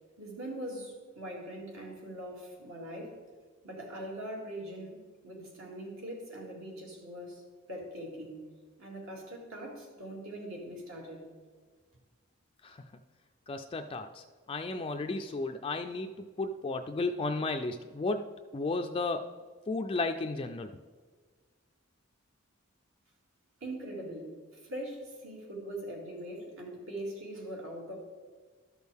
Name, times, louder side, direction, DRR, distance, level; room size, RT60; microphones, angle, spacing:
voice 1, 0.2-3.2 3.6-8.5 8.8-11.2 23.6-27.9, right 1 dB, 75° right, -2 dB, 2.4 m, -42 dB
voice 2, 13.5-18.3 18.5-19.3 19.7-20.7, left 3 dB, 25° left, 6 dB, 0.3 m, -34 dB
13.0 x 6.3 x 3.5 m, 1.5 s
head